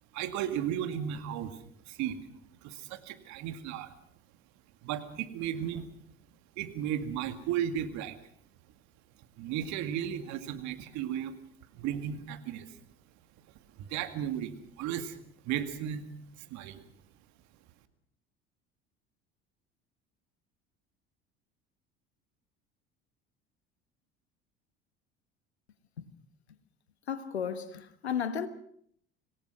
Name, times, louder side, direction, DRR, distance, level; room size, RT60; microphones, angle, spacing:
voice 1, 0.1-2.2 2.6-3.9 4.8-5.9 6.6-8.2 9.4-11.3 11.7-12.8 13.8-15.2 15.4-16.1 16.4-16.8, right 10 dB, 60° right, 2.3 m, -35 dB
voice 2, 27.1-28.5, left 7 dB, 90° left, 1.4 m, -33 dB
25.5 x 18.0 x 6.2 m
hypercardioid pair, 65°, 32 cm